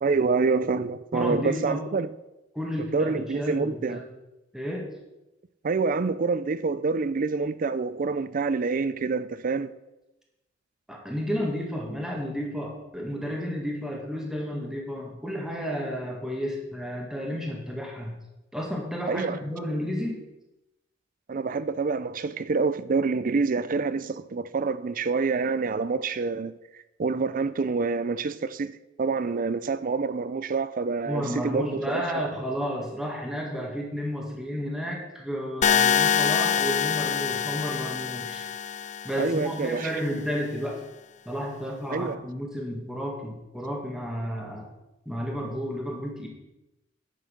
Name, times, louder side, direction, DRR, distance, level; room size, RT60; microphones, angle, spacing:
voice 1, 0.0-2.1 2.9-4.0 5.6-9.7 19.1-19.4 21.3-26.5 27.0-32.2 39.2-39.9 41.9-42.2, right 4 dB, 45° right, 0.5 m, -27 dB
voice 2, 1.1-1.8 2.6-4.0 4.5-4.9 10.9-18.2 18.5-20.2 31.1-38.5 39.0-40.8 41.3-44.7 45.1-46.3, equal, 5° right, 2.0 m, -32 dB
sound 1, 35.6-39.6, left 8 dB, 40° left, 0.4 m, -25 dB
10.0 x 6.7 x 6.4 m
head